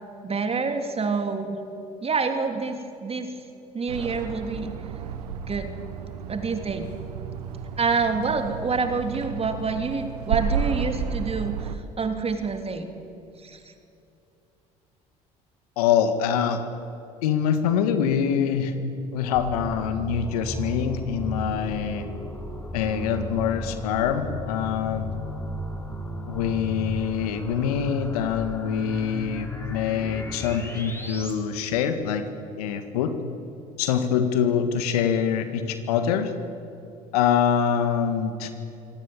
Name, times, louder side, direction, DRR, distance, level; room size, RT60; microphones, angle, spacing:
voice 1, 0.2-1.6 2.0-3.3 3.7-4.7 5.5-5.7 6.3-6.9 7.8-11.7 12.0-12.9 13.4-13.6, right 4 dB, 30° right, 6 dB, 3.3 m, -27 dB
sound 1, 3.9-11.8, right 7 dB, 80° right, 1.3 m, -32 dB
voice 2, 15.8-16.6 17.2-18.7 19.1-22.1 22.7-25.1 26.3-32.2 32.6-33.1 33.8-36.3 37.1-38.5, left 8 dB, 75° left, 9 dB, 1.8 m, -24 dB
sound 2, 19.3-31.3, equal, 10° left, 4.7 m, -35 dB
24.5 x 18.0 x 8.7 m, 2.7 s
hypercardioid pair, 60°, 20 cm